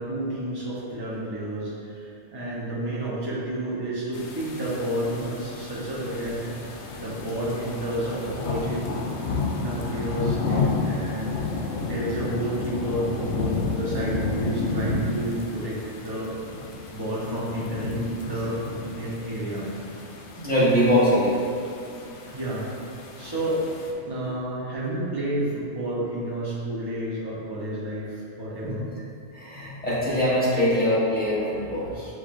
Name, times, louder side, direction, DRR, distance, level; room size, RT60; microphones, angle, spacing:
voice 1, 0.0-6.4 6.7-8.8 9.6-11.3 11.9-16.3 16.9-18.6 18.9-19.7 22.2-22.7 23.2-23.6 24.0-28.8, right 1 dB, 25° right, -8 dB, 0.9 m, -30 dB
sound 1, 4.1-23.9, left 3 dB, 75° left, 0.8 m, -31 dB
voice 2, 20.4-21.3 28.6-28.7 29.3-32.1, equal, 10° left, -10 dB, 1.4 m, -22 dB
6.3 x 3.1 x 2.6 m, 2.5 s
omnidirectional pair, 1.2 m